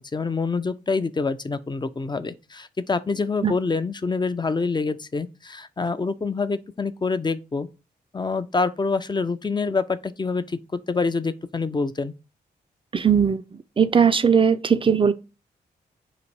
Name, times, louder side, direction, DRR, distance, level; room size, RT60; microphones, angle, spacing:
voice 1, 0.0-7.7 8.1-10.6 10.9-12.1, left 4 dB, 25° left, 0.5 m, -26 dB
voice 2, 12.9-13.4 13.8-15.1, right 7 dB, 30° right, 0.4 m, -18 dB
4.0 x 2.5 x 4.6 m
supercardioid pair, 40°, 19 cm